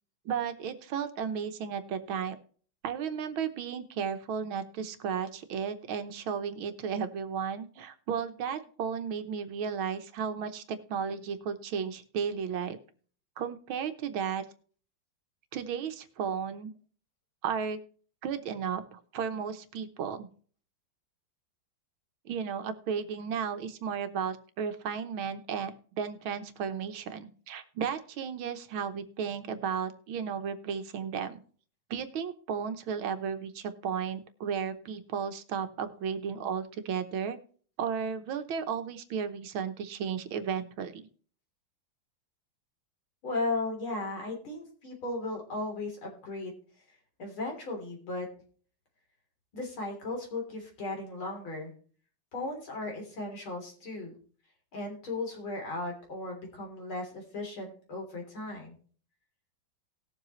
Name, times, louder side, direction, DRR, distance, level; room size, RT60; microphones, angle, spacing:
voice 1, 0.3-2.4 2.8-12.8 13.4-14.5 15.5-16.7 17.4-17.8 18.2-20.3 22.3-25.7 26.0-31.4 31.9-37.4 37.8-41.1, right 7 dB, 80° right, 9 dB, 1.8 m, -34 dB
voice 2, 43.2-46.5 47.2-48.3 49.5-51.7 52.3-54.2 54.7-58.7, left 2 dB, 80° left, 1 dB, 4.2 m, -36 dB
19.0 x 7.4 x 3.1 m, 0.44 s
omnidirectional pair, 2.2 m